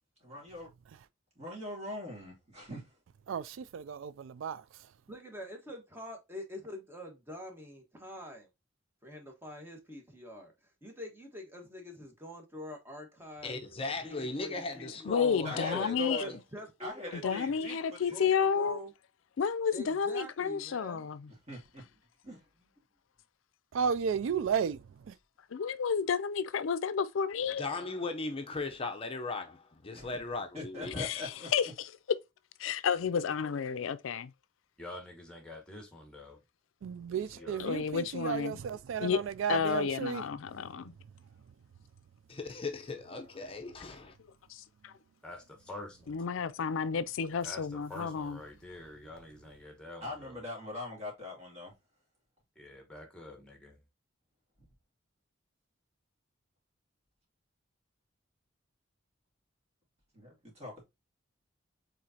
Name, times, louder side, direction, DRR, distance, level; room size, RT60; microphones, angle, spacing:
voice 1, 0.2-0.7 1.4-2.9 15.4-16.4 16.8-18.2 21.3-21.9 22.2-22.4 29.9-30.2 30.5-31.5 50.0-51.7 60.1-60.8, left 2 dB, 35° right, 2.7 m, -42 dB
voice 2, 3.3-4.6 23.7-24.8 25.1-25.2 36.8-40.2, right 7 dB, 75° right, 0.3 m, -33 dB
voice 3, 5.1-8.5 9.0-10.5 10.8-13.6 14.0-15.3 15.7-15.9 16.2-17.5 18.1-18.9 19.7-21.1, left 1 dB, 10° right, 1.3 m, -45 dB
voice 4, 13.4-16.4 27.6-31.0 42.3-44.1, left 3 dB, 30° left, 0.6 m, -37 dB
voice 5, 15.1-16.2 17.1-18.8 19.4-21.3 25.5-27.6 31.0-31.9 32.6-34.3 37.6-38.6 39.0-39.2 39.5-40.9 44.5-44.9 46.1-48.4, left 6 dB, 80° left, 0.4 m, -31 dB
voice 6, 34.8-36.4 37.1-37.6 45.2-46.2 47.4-50.4 52.5-53.8, left 1 dB, 5° left, 1.5 m, -47 dB
4.9 x 3.9 x 2.7 m
head